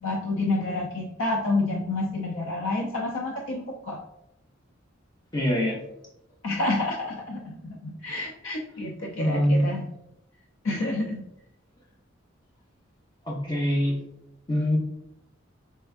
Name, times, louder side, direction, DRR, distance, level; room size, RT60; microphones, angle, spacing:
voice 1, 0.0-4.0 6.4-9.8 10.6-11.3, left 2 dB, 85° left, 0 dB, 0.5 m, -29 dB
voice 2, 5.3-5.8 9.2-9.7 13.3-13.9 14.5-14.8, equal, 20° left, -1 dB, 0.8 m, -23 dB
4.3 x 3.4 x 2.4 m, 0.83 s
head